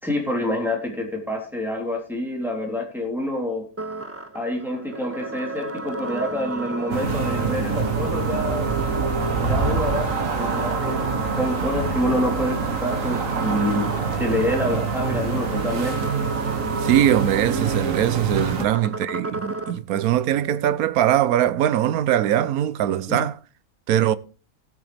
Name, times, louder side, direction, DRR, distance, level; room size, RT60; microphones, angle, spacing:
voice 1, 0.0-3.6 4.3-8.7 9.4-11.0 11.4-13.9 14.2-16.0 23.1-23.2, left 1 dB, ahead, 3.3 m, -27 dB
sound 1, 3.8-19.8, right 3 dB, 20° right, 0.4 m, -33 dB
sound 2, 6.9-18.7, right 4 dB, 65° right, 1.8 m, -26 dB
voice 2, 16.8-23.3 23.9-24.1, right 11 dB, 80° right, 1.1 m, -21 dB
18.0 x 7.0 x 3.4 m
omnidirectional pair, 1.5 m